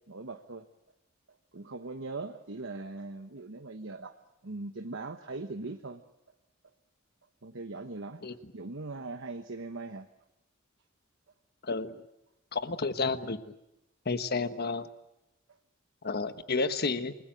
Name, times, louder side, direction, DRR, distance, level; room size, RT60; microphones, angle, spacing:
voice 1, 0.1-0.7 1.5-4.2 4.4-6.0 7.4-8.2 8.5-10.1, right 3 dB, 65° right, 6 dB, 1.2 m, -40 dB
voice 2, 11.6-12.0 12.5-13.4 14.0-14.9 16.0-17.1, left 4 dB, 50° left, 10 dB, 1.4 m, -31 dB
28.5 x 21.0 x 9.1 m, 0.90 s
head